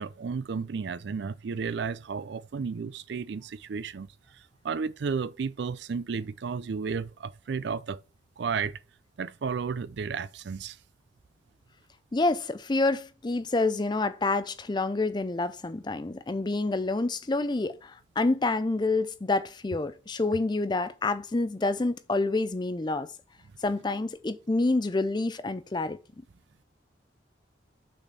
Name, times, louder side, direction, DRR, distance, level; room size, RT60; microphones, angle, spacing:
voice 1, 0.0-4.1 4.3-8.0 8.4-8.8 9.2-10.8, right 5 dB, 65° right, 0.4 m, -33 dB
voice 2, 12.1-23.1 23.6-26.0, left 2 dB, 25° left, 0.4 m, -28 dB
6.4 x 4.2 x 6.1 m
head